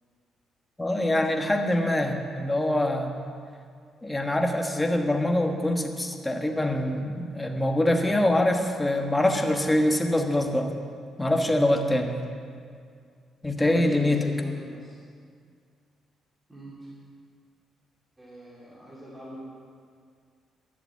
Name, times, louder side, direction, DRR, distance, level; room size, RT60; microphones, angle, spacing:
voice 1, 0.8-3.1 4.0-10.7 11.2-12.1 13.4-14.2, left 1 dB, 15° left, 3 dB, 1.3 m, -24 dB
voice 2, 13.4-15.0 16.5-16.7 18.2-19.4, equal, 15° right, -7 dB, 2.7 m, -42 dB
11.0 x 7.1 x 8.4 m, 2.2 s
cardioid pair, 90°, 0 cm